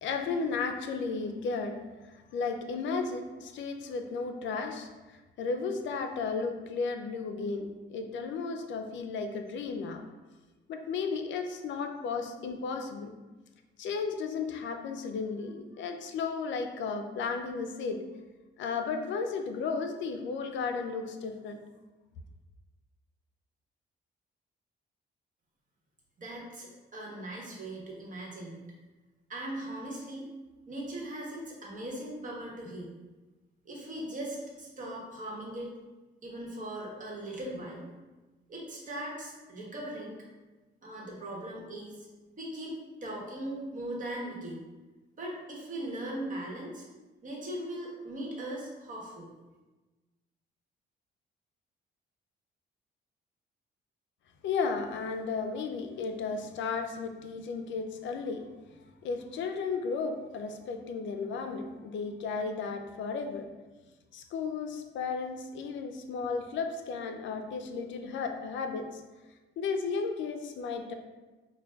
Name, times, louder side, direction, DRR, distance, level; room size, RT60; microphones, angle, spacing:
voice 1, 0.0-1.8 2.1-10.0 10.7-13.1 13.8-18.0 18.6-21.6 54.4-58.5 59.0-63.5 64.1-69.0 69.6-70.9, left 4 dB, 70° left, 6 dB, 0.4 m, -34 dB
voice 2, 26.2-28.7 29.3-30.3 30.7-32.9 33.6-35.7 36.2-37.9 38.5-40.2 40.8-42.1 42.4-44.6 45.2-46.9 47.2-49.3, right 1 dB, 40° right, -3 dB, 1.1 m, -39 dB
5.6 x 2.2 x 2.3 m, 1.2 s
cardioid pair, 90°, 20 cm